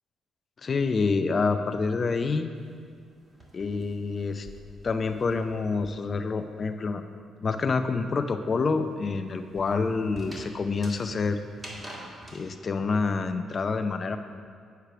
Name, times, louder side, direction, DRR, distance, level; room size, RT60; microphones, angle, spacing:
voice 1, 0.6-2.5 3.5-4.5 4.8-7.0 7.4-11.4 12.3-14.2, left 4 dB, 40° left, 8 dB, 0.5 m, -27 dB
sound 1, 2.6-6.3 6.6-12.4, right 1 dB, 30° right, 1.8 m, -47 dB
8.2 x 4.6 x 5.9 m, 2.1 s
cardioid pair, 90°, 0 cm